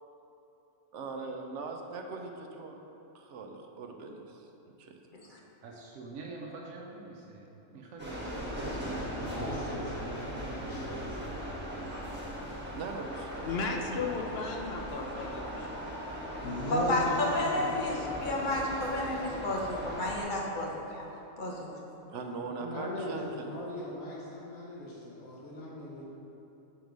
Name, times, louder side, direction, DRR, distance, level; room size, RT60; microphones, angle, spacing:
voice 1, 0.9-2.8 3.1-4.5 4.8-5.0 12.7-13.3 22.1-23.6, right 4 dB, 65° right, 3 dB, 0.9 m, -40 dB
voice 2, 5.6-9.2, right 3 dB, 85° right, -1 dB, 1.1 m, -45 dB
sound 1, 8.0-20.2, equal, 10° right, 1.3 m, -39 dB
voice 3, 9.2-11.3 16.4-18.3 22.6-26.0, left 1 dB, 75° left, -6 dB, 1.4 m, -38 dB
voice 4, 13.4-15.9, left 4 dB, 60° left, 2 dB, 0.8 m, -35 dB
voice 5, 16.7-21.1 21.4-21.6, left 1 dB, 40° left, -3 dB, 1.1 m, -31 dB
7.1 x 4.6 x 5.2 m, 2.9 s
omnidirectional pair, 1.4 m